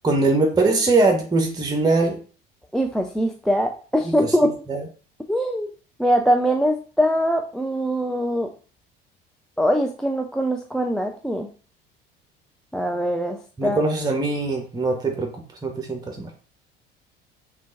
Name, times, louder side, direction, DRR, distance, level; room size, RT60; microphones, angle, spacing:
voice 1, 0.0-2.2 4.2-4.3 4.7-4.8 13.6-15.3 15.6-16.3, right 3 dB, 15° right, 3 dB, 0.9 m, -21 dB
voice 2, 2.7-4.5 5.3-5.7 6.0-8.5 9.6-11.5 12.7-13.9, equal, ahead, 3 dB, 0.3 m, -22 dB
3.7 x 3.2 x 3.8 m, 0.38 s
figure-of-eight pair, 60°, 29 cm